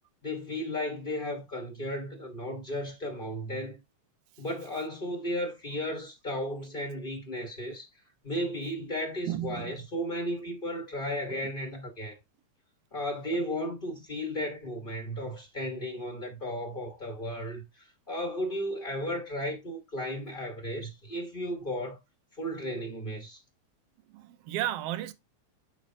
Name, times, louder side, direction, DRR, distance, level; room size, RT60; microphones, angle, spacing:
voice 1, 0.2-3.8 4.4-7.9 8.2-12.2 12.9-22.0 22.4-23.4, equal, 80° left, 0.4 m, -34 dB
voice 2, 9.3-9.7 11.4-11.5 24.1-25.1, right 13 dB, 75° right, 1.5 m, -33 dB
10.0 x 4.4 x 2.8 m
omnidirectional pair, 3.4 m